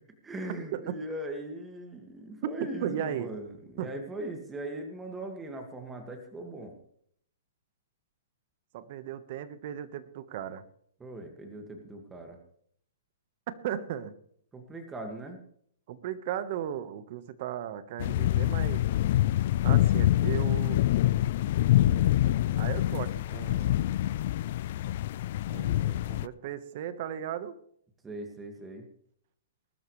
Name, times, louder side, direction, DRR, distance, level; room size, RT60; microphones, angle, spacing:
voice 1, 0.2-6.7 11.0-12.4 14.5-15.4 28.0-28.9, right 1 dB, 10° right, 4 dB, 2.1 m, -40 dB
voice 2, 2.8-3.3 3.8-3.9 8.7-10.6 13.5-14.1 15.9-18.9 19.6-20.8 22.6-23.8 25.5-27.6, right 10 dB, 50° right, 13 dB, 1.4 m, -36 dB
sound 1, 18.0-26.3, left 14 dB, 55° left, 0.4 m, -26 dB
21.0 x 13.0 x 3.3 m, 0.65 s
hypercardioid pair, 140°, 0 cm